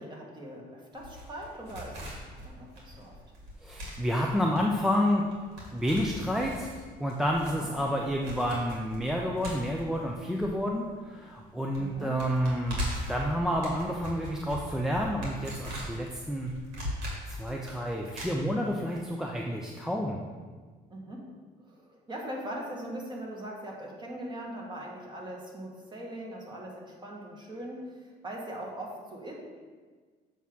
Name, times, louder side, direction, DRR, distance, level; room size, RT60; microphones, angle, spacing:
voice 1, 0.0-3.2 7.5-7.8 11.8-12.2 20.9-21.3 21.6-29.3, right 1 dB, 25° right, -2 dB, 1.7 m, -41 dB
sound 1, 1.0-11.0 11.3-11.4 11.7-19.0 19.3-19.4, equal, 85° right, 2.3 m, -40 dB
voice 2, 3.6-5.3 5.7-6.7 7.0-12.8 13.1-16.5 17.3-20.2, equal, ahead, -1 dB, 0.6 m, -29 dB
7.1 x 3.6 x 6.1 m, 1.5 s
cardioid pair, 110°, 17 cm